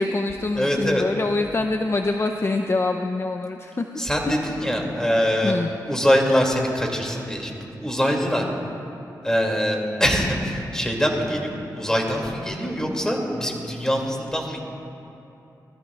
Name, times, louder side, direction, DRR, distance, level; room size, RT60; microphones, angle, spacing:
voice 1, 0.0-3.8 4.2-4.5 5.4-5.7, left 3 dB, 35° left, 5 dB, 0.6 m, -25 dB
voice 2, 0.5-1.0 4.0-8.4 9.2-14.6, equal, 10° left, 0 dB, 2.4 m, -23 dB
20.5 x 14.0 x 2.4 m, 2.8 s
cardioid pair, 50°, 8 cm